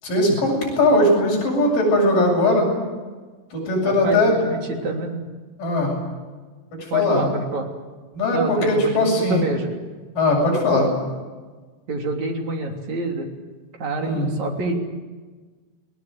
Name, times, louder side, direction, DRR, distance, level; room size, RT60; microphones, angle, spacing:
voice 1, 0.0-2.7 3.5-4.3 5.6-5.9 6.9-7.3 8.1-9.4 10.2-10.9 14.0-14.3, left 1 dB, 50° left, -2 dB, 9.2 m, -19 dB
voice 2, 3.8-5.2 6.9-7.7 8.3-9.8 11.9-13.3 13.8-14.7, right 2 dB, 45° right, 1 dB, 4.2 m, -27 dB
30.0 x 19.5 x 8.0 m, 1.4 s
omnidirectional pair, 4.9 m